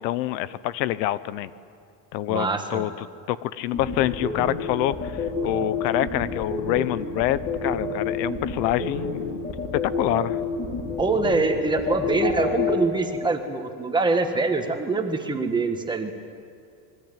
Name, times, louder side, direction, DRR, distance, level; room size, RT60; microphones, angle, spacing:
voice 1, 0.0-1.5 2.1-9.4 9.7-10.4, left 14 dB, 85° left, 15 dB, 1.2 m, -26 dB
voice 2, 2.3-2.8 11.0-16.1, right 3 dB, 10° right, 5 dB, 1.5 m, -24 dB
sound 1, 3.7-12.7, left 4 dB, 25° left, 5.7 m, -28 dB
28.5 x 22.5 x 9.2 m, 2.3 s
cardioid pair, 180°, 49 cm